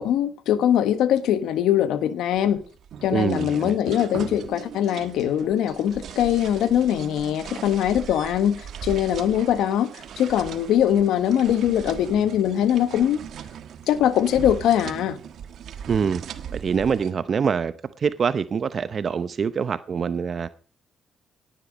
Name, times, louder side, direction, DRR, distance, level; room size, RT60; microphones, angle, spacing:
voice 1, 0.0-2.6 3.0-9.9 10.2-13.2 13.9-15.2, left 10 dB, 85° left, 1.3 m, -22 dB
sound 1, 2.4-17.1, right 8 dB, 70° right, 1.3 m, -39 dB
voice 2, 3.1-3.7 15.9-16.2 16.5-20.5, right 6 dB, 45° right, 0.7 m, -25 dB
17.5 x 10.0 x 5.2 m
cardioid pair, 90°, 0 cm